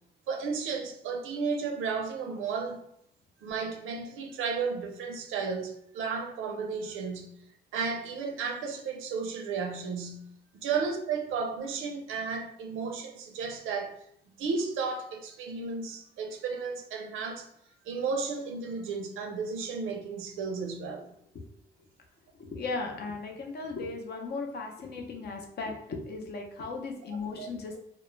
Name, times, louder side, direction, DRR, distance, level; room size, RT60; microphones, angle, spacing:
voice 1, 0.3-2.8 3.4-7.3 7.7-10.3 10.6-14.0 14.4-17.5 17.9-21.1 27.4-27.5, right 5 dB, 85° right, 0.5 m, -33 dB
voice 2, 22.4-27.8, left 3 dB, 55° left, 0.6 m, -37 dB
2.2 x 2.0 x 3.1 m
cardioid pair, 90°, 20 cm